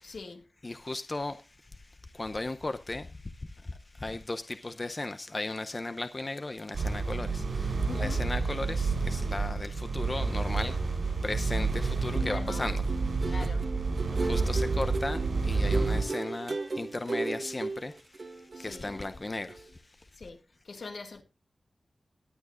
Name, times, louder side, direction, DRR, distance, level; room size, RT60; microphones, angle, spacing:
voice 1, 0.0-0.5 7.8-8.2 12.2-12.9 13.3-13.7 18.5-19.0 20.1-21.2, left 4 dB, 75° left, 2.0 m, -43 dB
voice 2, 0.6-1.4 2.2-3.0 4.0-7.4 7.9-10.8 11.2-12.8 13.2-13.4 14.2-17.9 18.6-19.5, left 2 dB, 35° left, 0.7 m, -35 dB
sound 1, 6.7-16.0, right 4 dB, 85° right, 7.5 m, -29 dB
sound 2, 12.0-19.2 19.5-19.7, right 3 dB, 55° right, 1.4 m, -36 dB
20.5 x 8.6 x 2.5 m
wide cardioid pair, 75°, 0 cm